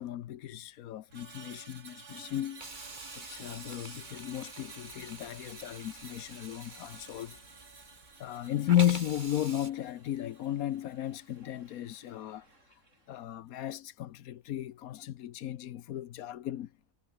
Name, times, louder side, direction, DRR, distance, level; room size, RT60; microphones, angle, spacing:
voice 1, 0.0-2.7 3.1-7.4 8.2-12.8 13.1-16.7, left 12 dB, 70° left, 1.2 m, -34 dB
Screech, 1.1-11.5 11.8-12.1, right 4 dB, 80° right, 3.8 m, -52 dB
Hiss, 2.6-8.3 8.7-9.7, right 2 dB, 30° right, 2.8 m, -47 dB
sound 1, 5.8-13.2, right 3 dB, 50° right, 4.4 m, -67 dB
omnidirectional pair, 1.6 m